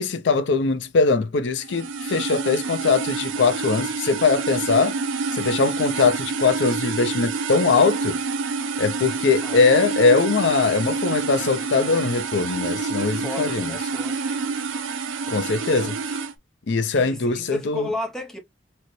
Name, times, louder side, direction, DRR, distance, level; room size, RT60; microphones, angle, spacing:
voice 1, 0.0-5.0 5.3-8.2 8.8-13.7 15.3-16.0 16.7-17.9, left 4 dB, 65° left, 0.5 m, -21 dB
sound 1, 1.6-16.3, right 4 dB, 85° right, 0.5 m, -28 dB
voice 2, 13.0-14.3 15.5-16.2 16.9-18.4, left 2 dB, 5° left, 0.6 m, -34 dB
4.0 x 2.1 x 3.0 m
head